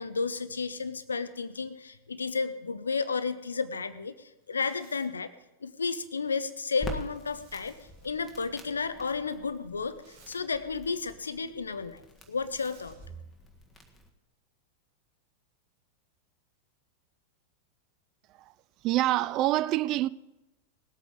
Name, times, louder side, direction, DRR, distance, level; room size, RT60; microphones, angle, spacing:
voice 1, 0.0-5.3 5.6-7.8 8.0-13.0, left 4 dB, 75° left, 0.7 m, -32 dB
Zipper (clothing), 4.4-5.1 7.1-8.4 9.7-10.4 12.2-13.1, right 5 dB, 55° right, 2.6 m, -60 dB
Crackle, 6.8-14.1, equal, 10° left, 1.7 m, -45 dB
voice 2, 18.8-20.1, right 15 dB, 40° right, 0.3 m, -26 dB
19.0 x 8.4 x 4.9 m
figure-of-eight pair, 90°, 0 cm